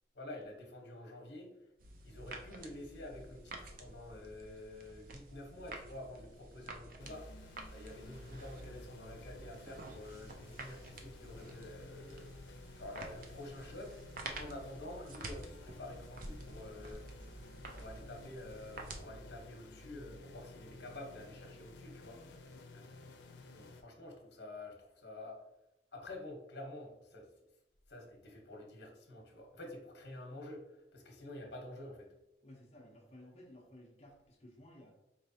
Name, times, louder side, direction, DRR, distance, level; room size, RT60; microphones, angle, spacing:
voice 1, 0.1-1.5 2.0-7.4 7.7-14.0 14.2-17.1 17.7-22.2 23.1-25.4 25.9-27.3 27.9-30.7 30.9-32.1, left 1 dB, 70° left, 2 dB, 0.9 m, -49 dB
sound 1, 1.8-19.0, right 2 dB, 50° right, 0.5 m, -50 dB
sound 2, 7.0-23.8, left 2 dB, 90° left, 0.5 m, -53 dB
voice 2, 22.1-23.3 32.4-34.9, left 1 dB, 35° left, 0 dB, 0.7 m, -57 dB
4.2 x 3.2 x 2.7 m, 0.89 s
head